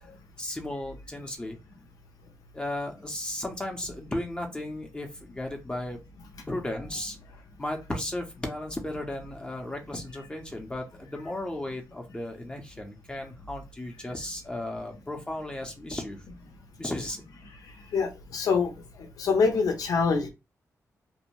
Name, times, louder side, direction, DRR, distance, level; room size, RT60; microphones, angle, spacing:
voice 1, 0.4-1.6 2.5-6.0 6.5-7.1 7.6-16.2 16.8-17.2, left 1 dB, 15° left, 2 dB, 0.6 m, -35 dB
voice 2, 17.9-18.7 19.0-20.3, left 5 dB, 85° left, 4 dB, 0.6 m, -25 dB
2.6 x 2.0 x 2.9 m, 0.25 s
cardioid pair, 85°, 6 cm